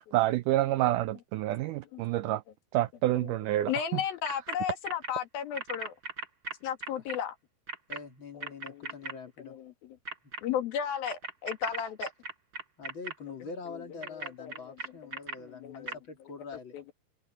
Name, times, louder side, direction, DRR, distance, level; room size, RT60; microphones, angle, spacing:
voice 1, 0.1-2.4 2.7-4.0, right 16 dB, 85° right, 1.8 m, -28 dB
voice 2, 1.9-2.4 3.2-5.9 6.6-7.4 8.4-10.0 10.4-12.1 13.7-14.8 15.4-16.0 16.7-16.9, left 9 dB, 75° left, 3.8 m, -36 dB
sound 1, 4.3-4.6 4.8-5.1 5.6-7.2 7.7-8.0 8.4-9.1 10.1-10.4 11.1-13.1 14.0-15.4 15.9-16.0, right 3 dB, 30° right, 5.3 m, -37 dB
voice 3, 7.9-9.6 12.8-16.7, left 5 dB, 35° left, 2.8 m, -44 dB
omnidirectional pair, 4.3 m